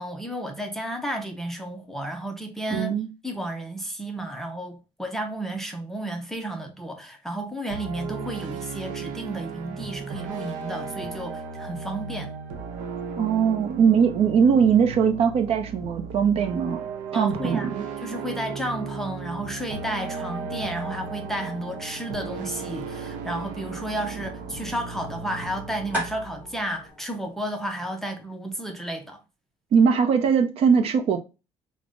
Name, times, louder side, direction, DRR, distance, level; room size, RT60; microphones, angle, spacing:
voice 1, 0.0-2.9 3.2-12.3 17.1-17.7 18.0-29.2, right 1 dB, 5° left, 0.5 m, -32 dB
voice 2, 2.7-3.1 13.2-16.8 17.1-17.8 29.7-31.2, right 6 dB, 50° right, 0.6 m, -20 dB
sound 1, 7.7-26.9, right 5 dB, 85° right, 0.7 m, -36 dB
sound 2, 20.5-28.2, equal, 10° right, 2.2 m, -40 dB
5.1 x 2.1 x 2.5 m
cardioid pair, 155°, 13 cm